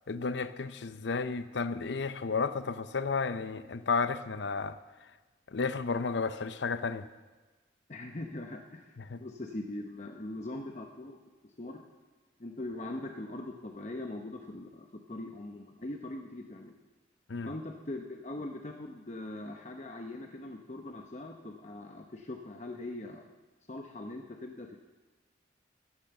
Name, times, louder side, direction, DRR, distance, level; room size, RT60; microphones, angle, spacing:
voice 1, 0.1-4.8 5.5-7.0 9.1-9.2 17.3-17.5, left 4 dB, 80° left, 12 dB, 0.6 m, -32 dB
voice 2, 7.9-8.9 9.2-11.2 11.6-11.8 12.4-16.8 17.5-23.2 23.7-24.8, left 2 dB, 40° left, 3 dB, 0.8 m, -41 dB
15.0 x 10.0 x 6.9 m, 1.2 s
head